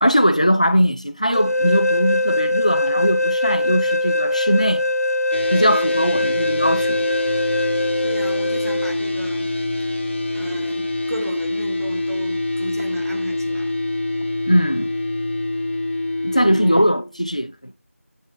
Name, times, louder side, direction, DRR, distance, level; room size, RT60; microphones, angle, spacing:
voice 1, 0.0-4.8 5.5-7.0 14.5-14.9 16.2-17.7, equal, 30° left, 0.4 m, -20 dB
sound 1, 1.3-8.9, left 2 dB, 90° left, 0.7 m, -22 dB
sound 2, 5.3-16.8, left 2 dB, 50° left, 1.4 m, -25 dB
voice 2, 8.0-9.5 10.3-13.8 16.3-17.0, right 1 dB, 80° right, 2.5 m, -35 dB
7.6 x 5.8 x 4.0 m
figure-of-eight pair, 175°, 8 cm